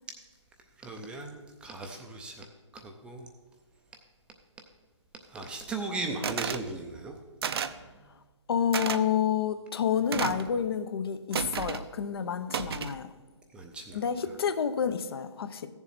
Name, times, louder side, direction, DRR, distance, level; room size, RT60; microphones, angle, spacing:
voice 1, 0.8-2.4 2.7-3.3 5.3-7.1 13.5-14.0, right 3 dB, 5° right, 0.5 m, -37 dB
sound 1, 6.2-6.6 7.4-7.8 8.7-9.0 10.1-10.5 11.3-11.8 12.5-13.0, right 7 dB, 55° right, 0.6 m, -32 dB
voice 2, 8.5-13.1 13.9-15.7, left 8 dB, 55° left, 0.7 m, -29 dB
14.5 x 7.1 x 4.2 m
hypercardioid pair, 150°, 16 cm